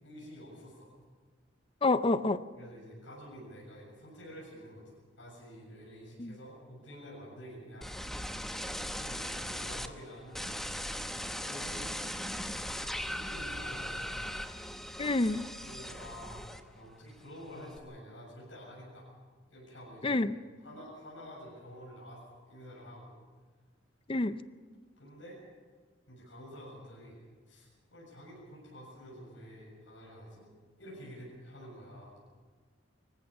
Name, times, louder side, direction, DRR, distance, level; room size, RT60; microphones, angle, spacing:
voice 1, 0.0-0.9 2.6-7.9 9.0-10.4 11.4-12.0 12.9-14.3 15.6-19.1 19.5-20.2 20.6-23.1 25.0-25.4 26.1-27.2 27.5-30.5 30.8-32.1, equal, 85° left, -5 dB, 7.3 m, -49 dB
voice 2, 1.8-2.4 6.2-6.3 15.0-15.4 20.0-20.3 24.1-24.4, left 2 dB, 30° left, 13 dB, 0.5 m, -28 dB
sound 1, 7.8-9.9 10.3-16.9 17.2-17.8, equal, ahead, 0.9 m, -39 dB
25.0 x 15.5 x 7.2 m, 1.5 s
head